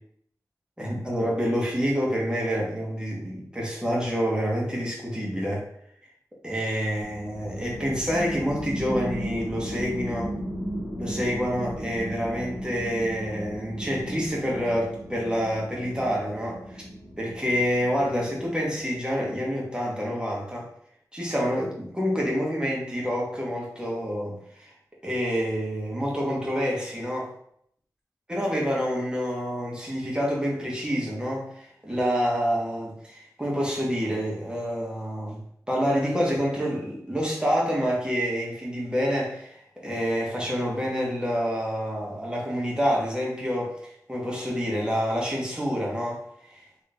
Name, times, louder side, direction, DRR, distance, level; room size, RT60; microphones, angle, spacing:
voice 1, 0.8-5.7 6.4-10.3 11.0-16.8 17.2-20.7 21.1-24.7 25.0-27.3 28.3-35.4 35.7-46.6, equal, 15° right, -4 dB, 1.6 m, -27 dB
sound 1, 7.0-19.1, equal, 60° left, 1.3 m, -36 dB
3.9 x 3.2 x 3.8 m, 0.68 s
wide cardioid pair, 65°, 7 cm